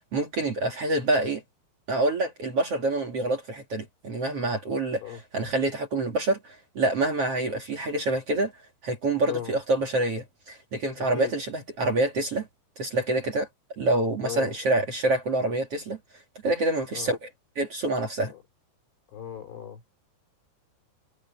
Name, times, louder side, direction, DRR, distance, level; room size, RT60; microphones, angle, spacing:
voice 1, 0.1-1.4 1.9-5.0 5.3-8.5 8.8-12.5 12.8-13.5 13.8-16.0 16.4-17.3 17.6-18.3, right 2 dB, 40° right, 2.5 m, -26 dB
voice 2, 11.0-11.3 14.2-14.6 16.9-17.1 18.3-18.4 19.1-19.8, left 10 dB, 90° left, 6.0 m, -37 dB
omnidirectional pair, 5.3 m